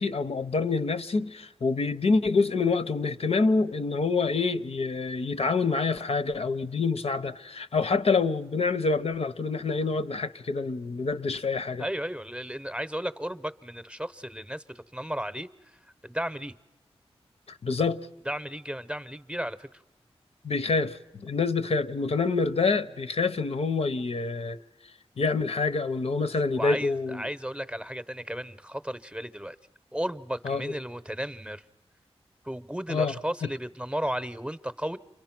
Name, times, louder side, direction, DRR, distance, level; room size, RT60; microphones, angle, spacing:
voice 1, 0.0-11.8 17.5-18.1 20.4-24.6 25.2-27.3 30.4-30.6 32.9-33.1, left 4 dB, 70° left, 0.8 m, -27 dB
voice 2, 11.8-16.5 18.2-19.8 26.6-29.6 29.9-31.7 32.4-35.0, equal, 10° right, 0.8 m, -34 dB
29.5 x 24.0 x 6.0 m
wide cardioid pair, 60°, 11 cm